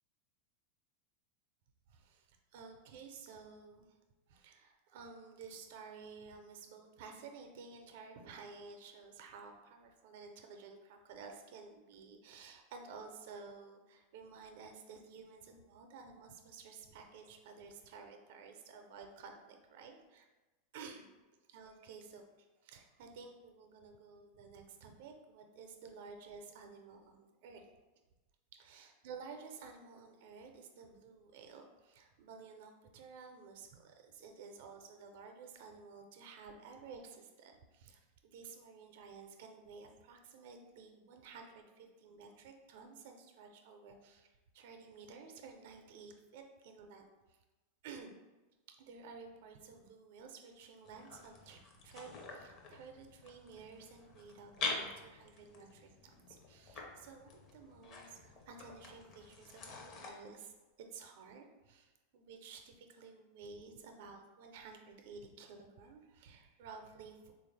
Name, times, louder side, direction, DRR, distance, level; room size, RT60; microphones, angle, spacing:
voice 1, 1.9-3.9 4.3-20.3 20.7-21.1 21.5-22.2 22.6-27.6 28.6-47.4 47.8-48.1 48.7-60.5 60.9-67.3, right 5 dB, 70° right, 4 dB, 0.5 m, -53 dB
sound 1, 50.8-60.1, left 3 dB, 40° left, 0.6 m, -46 dB
3.4 x 2.4 x 3.2 m, 1.1 s
hypercardioid pair, 120°, 0 cm